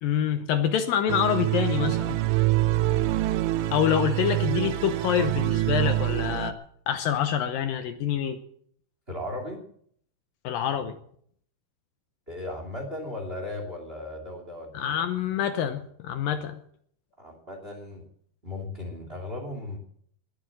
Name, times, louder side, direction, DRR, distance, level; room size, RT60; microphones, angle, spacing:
voice 1, 0.0-2.2 3.7-6.6 6.9-8.4 10.4-11.0 14.7-16.6, left 9 dB, 75° left, 9 dB, 2.4 m, -26 dB
sound 1, 1.1-6.5, right 16 dB, 80° right, 2.6 m, -25 dB
voice 2, 9.1-9.6 12.3-15.0 17.2-18.0 18.4-19.8, left 1 dB, 15° right, 3 dB, 2.5 m, -36 dB
20.5 x 8.3 x 7.7 m, 0.64 s
omnidirectional pair, 4.5 m